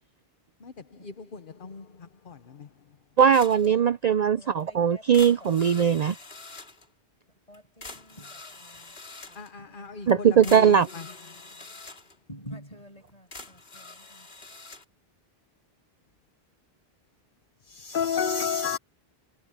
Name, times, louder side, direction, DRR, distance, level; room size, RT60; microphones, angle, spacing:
voice 1, 1.0-1.8 2.3-2.4 9.4-10.8 17.7-18.8, left 6 dB, 55° left, 1.2 m, -31 dB
voice 2, 3.2-6.1 10.1-10.9, right 8 dB, 50° right, 0.5 m, -20 dB
sound 1, 3.3-3.7 4.1-4.2 4.6-4.7 5.1-6.9 7.5-7.6 7.8-9.5 10.1-10.2 10.4-12.2 13.1-14.8, left 3 dB, 75° left, 2.6 m, -45 dB
voice 3, 4.2-5.3 7.5-8.9 9.3-9.9 12.3-14.3, equal, 35° left, 6.9 m, -48 dB
omnidirectional pair, 1.0 m